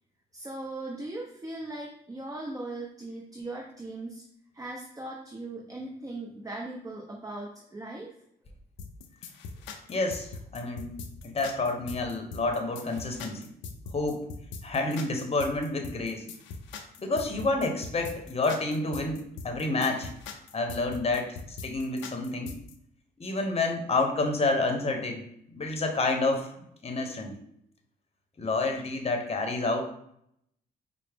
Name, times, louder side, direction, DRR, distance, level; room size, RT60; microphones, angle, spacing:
voice 1, 0.3-4.2 4.5-8.1, right 2 dB, 20° right, -1 dB, 0.7 m, -39 dB
sound 1, 8.8-22.7, left 5 dB, 90° left, 0.4 m, -41 dB
voice 2, 9.9-10.9 11.2-13.5 13.9-14.3 14.6-16.3 17.0-20.1 20.5-21.4 21.6-22.6 23.2-25.2 25.5-26.5 26.8-27.4 28.4-29.8, left 2 dB, 35° left, 3 dB, 0.8 m, -29 dB
4.6 x 2.0 x 3.4 m, 0.72 s
supercardioid pair, 65°, 18 cm